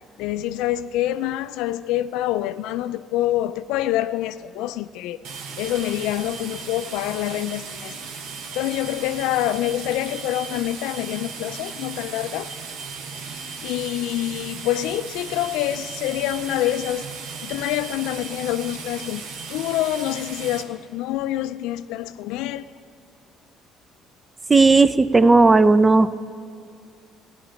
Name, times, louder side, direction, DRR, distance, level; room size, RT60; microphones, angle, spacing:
voice 1, 0.2-5.2 5.6-8.0 8.5-12.5 13.2-17.1 17.4-22.7, left 13 dB, 80° left, 0.3 m, -26 dB
sound 1, 5.2-20.6, right 5 dB, 80° right, 1.0 m, -36 dB
voice 2, 24.5-26.1, right 3 dB, 25° right, 0.4 m, -14 dB
15.0 x 10.5 x 5.2 m
supercardioid pair, 75°, 0 cm